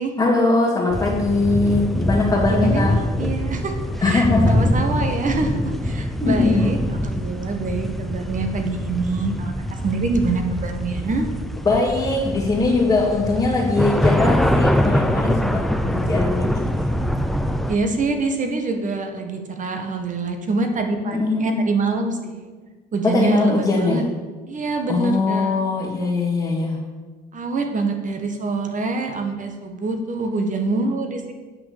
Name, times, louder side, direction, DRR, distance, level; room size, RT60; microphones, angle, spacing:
voice 1, 0.2-2.9 4.0-4.5 6.2-6.7 10.5-10.6 11.6-16.6 21.0-21.6 23.1-24.0 24.9-26.8, left 3 dB, 20° left, -6 dB, 2.6 m, -21 dB
sound 1, 0.9-17.8, left 1 dB, ahead, 0.7 m, -23 dB
voice 2, 2.4-9.5 9.8-11.3 17.7-22.5 22.9-24.0 24.5-25.6 27.3-31.3, right 3 dB, 40° right, 5 dB, 1.7 m, -25 dB
8.5 x 5.9 x 6.9 m, 1.3 s
supercardioid pair, 80°, 20 cm